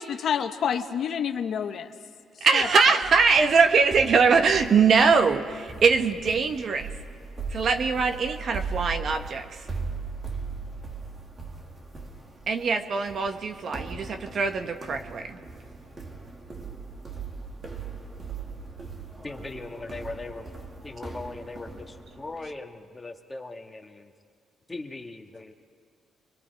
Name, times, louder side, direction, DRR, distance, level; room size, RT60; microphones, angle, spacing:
voice 1, 0.0-1.9 2.5-2.7, left 8 dB, 65° left, 7 dB, 1.1 m, -28 dB
voice 2, 2.4-6.9 7.5-9.6 12.5-15.4, right 5 dB, 55° right, 6 dB, 1.3 m, -22 dB
sound 1, 3.0-22.5, right 4 dB, 35° right, 2.1 m, -39 dB
voice 3, 19.2-20.5 20.8-24.1 24.7-25.5, left 3 dB, 20° left, 4 dB, 1.7 m, -39 dB
29.5 x 23.5 x 4.7 m, 2.3 s
cardioid pair, 90°, 0 cm